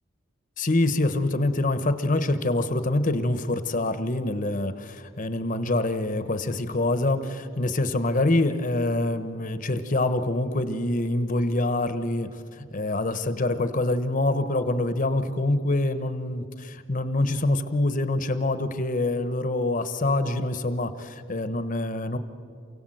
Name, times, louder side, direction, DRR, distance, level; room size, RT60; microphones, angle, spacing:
voice 1, 0.6-22.2, left 2 dB, 40° left, 11 dB, 1.0 m, -25 dB
28.5 x 17.0 x 7.8 m, 2.4 s
head